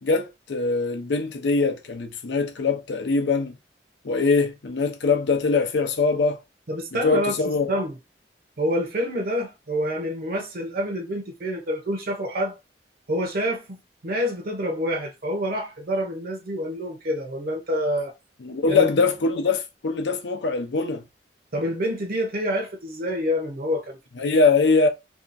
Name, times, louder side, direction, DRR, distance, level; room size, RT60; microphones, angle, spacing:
voice 1, 0.0-3.6 4.0-6.4 6.9-7.7 18.4-21.0 24.2-24.9, left 4 dB, 75° left, 0.5 m, -22 dB
voice 2, 6.7-8.0 8.6-12.6 13.1-18.1 18.7-18.9 21.5-24.4, equal, 55° right, 0.6 m, -27 dB
2.7 x 2.3 x 2.5 m
head